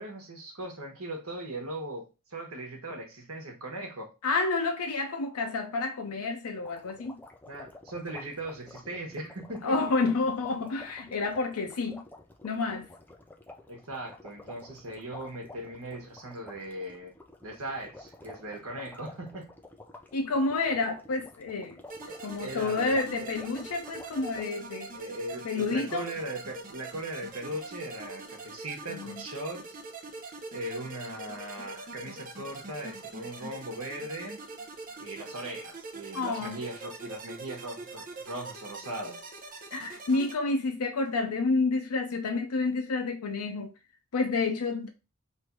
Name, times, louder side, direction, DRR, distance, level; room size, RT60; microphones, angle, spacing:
voice 1, 0.0-4.1 7.5-9.8 13.7-17.1 17.4-19.5 22.1-22.2 22.4-23.3 24.9-29.8 30.5-34.4 35.0-39.2, right 1 dB, 75° right, 1.2 m, -39 dB
voice 2, 4.2-7.2 9.6-12.0 12.4-12.9 20.1-21.8 22.2-24.9 25.4-26.1 28.9-29.2 36.1-36.6 39.7-43.7 44.1-44.9, left 3 dB, 85° left, 0.5 m, -29 dB
sound 1, 6.6-24.4, left 2 dB, 10° left, 0.4 m, -50 dB
sound 2, 21.9-40.3, right 3 dB, 40° right, 0.7 m, -43 dB
3.2 x 2.6 x 4.5 m
head